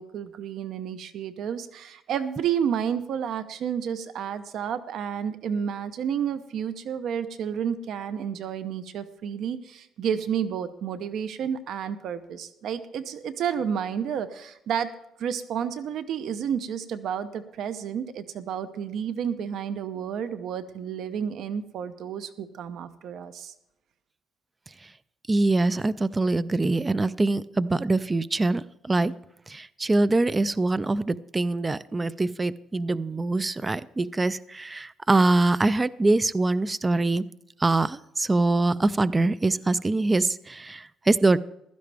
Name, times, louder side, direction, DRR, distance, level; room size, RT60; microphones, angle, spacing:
voice 1, 0.0-14.9 15.2-23.5, right 8 dB, 60° right, 12 dB, 0.7 m, -31 dB
voice 2, 25.3-29.1 29.5-37.2 37.6-41.4, right 2 dB, 15° right, 17 dB, 0.3 m, -24 dB
15.5 x 12.5 x 3.4 m, 0.84 s
cardioid pair, 150°, 0 cm